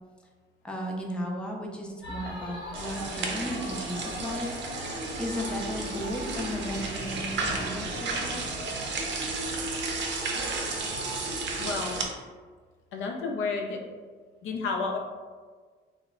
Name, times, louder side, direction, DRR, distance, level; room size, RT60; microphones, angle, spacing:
voice 1, 0.6-8.5, equal, 5° left, 0 dB, 0.4 m, -35 dB
sound 1, 2.0-11.7, left 1 dB, 65° left, 1.0 m, -39 dB
sound 2, 2.7-12.1, right 3 dB, 65° right, 0.5 m, -33 dB
voice 2, 11.6-12.0 12.9-13.8 14.4-15.0, left 4 dB, 80° left, 2 dB, 0.4 m, -31 dB
2.0 x 2.0 x 3.6 m, 1.5 s
cardioid pair, 90°, 20 cm